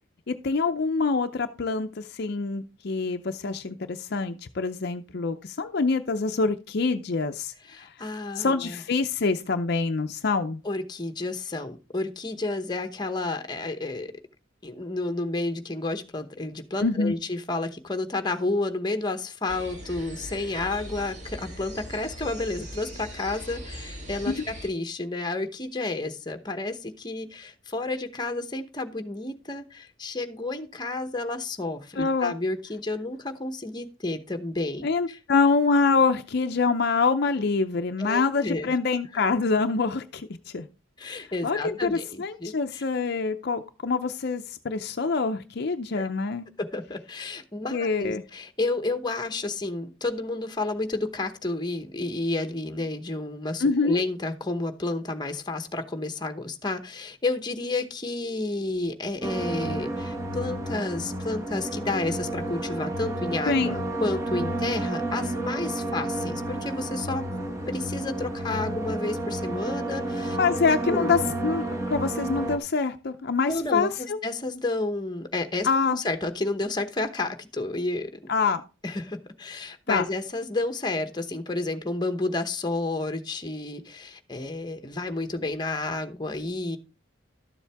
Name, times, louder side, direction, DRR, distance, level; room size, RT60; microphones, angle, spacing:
voice 1, 0.3-7.9 8.4-10.6 16.8-17.2 24.3-24.4 32.0-32.4 34.8-40.7 41.2-46.5 47.7-48.2 53.6-54.0 63.5-63.8 70.4-74.2 75.6-76.0 78.3-78.6 79.9-80.1, left 4 dB, 55° left, 7 dB, 0.5 m, -25 dB
voice 2, 7.7-8.8 10.6-14.1 14.6-35.2 38.0-38.7 41.0-42.8 46.0-46.1 46.6-67.3 67.7-70.4 70.8-71.1 73.5-78.3 78.8-86.8, left 2 dB, 20° left, 7 dB, 0.9 m, -31 dB
sound 1, 19.5-24.7, equal, 35° right, 1.8 m, -40 dB
sound 2, 59.2-72.6, right 1 dB, 15° right, 1.2 m, -31 dB
12.5 x 7.2 x 3.5 m, 0.32 s
head